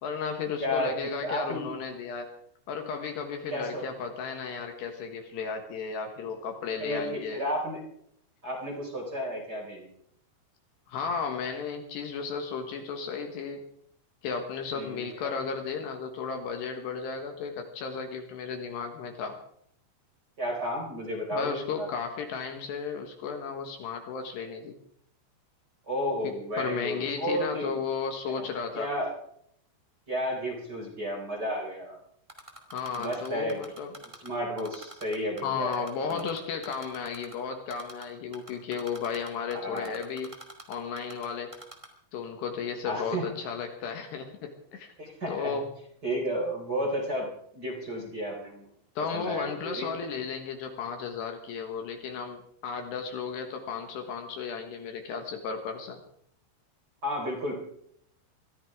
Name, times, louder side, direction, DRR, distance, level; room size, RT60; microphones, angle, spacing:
voice 1, 0.0-2.3 2.7-7.4 10.9-13.7 14.2-19.4 21.3-24.8 26.2-28.9 32.7-33.9 35.4-40.3 40.7-41.5 42.1-44.9 45.3-45.7 49.0-56.0, left 5 dB, 70° left, 5 dB, 3.3 m, -34 dB
voice 2, 0.6-1.7 3.5-3.9 6.8-7.8 8.4-9.9 14.7-15.3 20.4-21.9 25.9-27.8 28.3-28.5 28.7-29.1 30.1-32.0 33.0-33.7 34.2-36.2 39.5-39.9 42.8-43.3 45.0-45.6 46.0-47.3 47.5-48.7 49.1-49.9 57.0-57.5, equal, 20° right, 0 dB, 3.8 m, -32 dB
Typing, 32.3-34.3 34.6-35.4 35.7-37.3 37.7-38.0 38.3-41.2 41.5-41.9, right 1 dB, 45° right, 0.4 m, -45 dB
23.5 x 14.5 x 3.7 m, 0.67 s
omnidirectional pair, 5.5 m